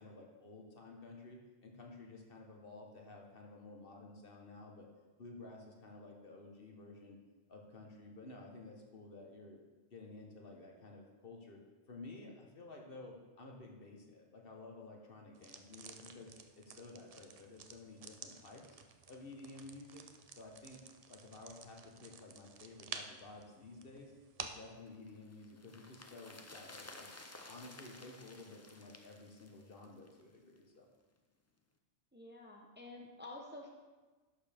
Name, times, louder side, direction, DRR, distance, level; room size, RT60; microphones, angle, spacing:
voice 1, 0.0-4.9 5.2-7.2 7.5-9.6 9.9-11.6 11.9-18.8 19.1-20.0 20.3-20.8 21.1-24.1 24.4-27.1 27.5-30.9, left 2 dB, 55° left, 1 dB, 1.3 m, -53 dB
sound 1, 15.3-24.7, right 5 dB, 45° right, 0.5 m, -52 dB
sound 2, 24.9-30.3 30.6-30.7, left 2 dB, 25° left, 0.4 m, -55 dB
voice 2, 32.1-33.7, left 2 dB, 10° right, 0 dB, 0.8 m, -50 dB
11.0 x 6.7 x 3.5 m, 1.3 s
omnidirectional pair, 1.2 m